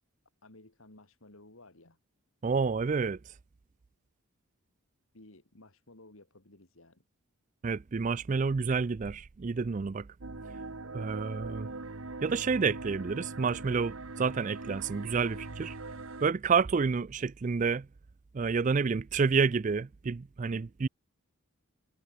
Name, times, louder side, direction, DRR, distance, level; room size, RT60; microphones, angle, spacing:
voice 1, 0.4-2.0 5.1-7.0 17.0-17.3, left 2 dB, 70° left, 2.9 m, -56 dB
voice 2, 2.4-3.2 7.6-10.1 10.9-11.7 12.2-15.8 16.2-17.9 18.3-20.9, right 5 dB, 35° right, 0.4 m, -29 dB
sound 1, 10.2-16.3, right 3 dB, 70° right, 1.5 m, -41 dB
head